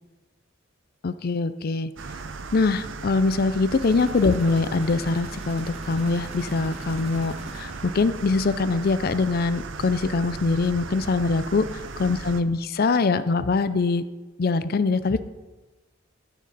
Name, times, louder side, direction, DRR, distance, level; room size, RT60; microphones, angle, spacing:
voice 1, 1.0-1.9 2.5-11.7 12.0-14.0 14.4-15.2, left 3 dB, 50° left, 13 dB, 0.5 m, -23 dB
sound 1, 2.0-12.4, right 4 dB, 70° right, 0.6 m, -37 dB
sound 2, 3.7-8.5, right 1 dB, 35° right, 1.4 m, -44 dB
13.0 x 6.5 x 4.0 m, 1.2 s
head